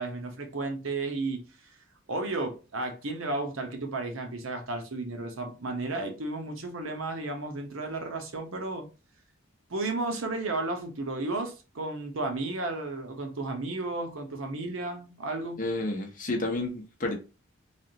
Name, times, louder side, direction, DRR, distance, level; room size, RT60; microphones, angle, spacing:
voice 1, 0.0-1.4 2.1-8.9 9.7-15.6, right 2 dB, 85° right, 0.8 m, -33 dB
voice 2, 15.6-17.1, left 2 dB, 40° left, 0.8 m, -30 dB
3.3 x 2.5 x 2.7 m
head